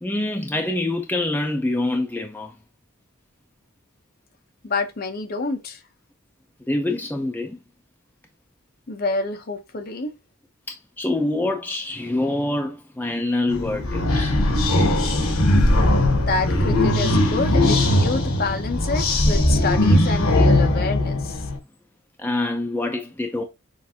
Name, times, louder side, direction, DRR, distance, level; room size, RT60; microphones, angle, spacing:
voice 1, 0.0-2.5 6.7-7.6 10.7-14.3 22.2-23.4, left 2 dB, 10° left, 0.5 m, -25 dB
voice 2, 4.6-5.8 8.9-10.1 16.1-21.4, left 3 dB, 45° left, 0.8 m, -28 dB
sound 1, 13.5-21.6, left 1 dB, 85° left, 1.1 m, -19 dB
6.4 x 2.6 x 2.7 m
head